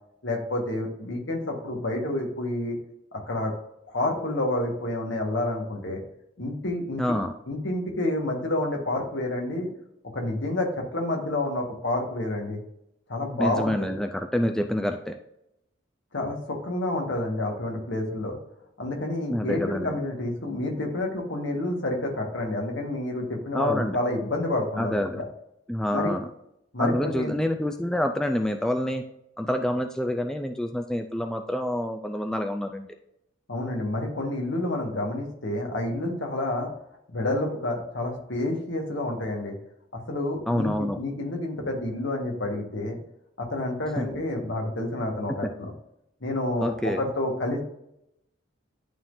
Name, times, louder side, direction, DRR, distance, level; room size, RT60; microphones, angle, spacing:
voice 1, 0.2-2.8 3.1-3.5 3.9-6.0 6.4-7.0 7.5-9.7 10.1-12.6 13.1-14.0 16.1-18.4 18.8-25.3 25.9-26.1 26.7-27.3 33.5-36.7 37.1-39.5 39.9-43.0 43.4-45.7 46.2-47.6, left 1 dB, 70° left, 1 dB, 1.6 m, -29 dB
voice 2, 7.0-7.3 13.4-15.1 19.3-20.0 23.5-24.0 24.8-25.2 25.7-26.3 26.8-29.0 29.4-32.9 40.5-41.0 44.0-44.1 46.6-47.0, left 1 dB, 5° left, 5 dB, 0.3 m, -27 dB
11.0 x 3.7 x 2.7 m, 0.80 s
head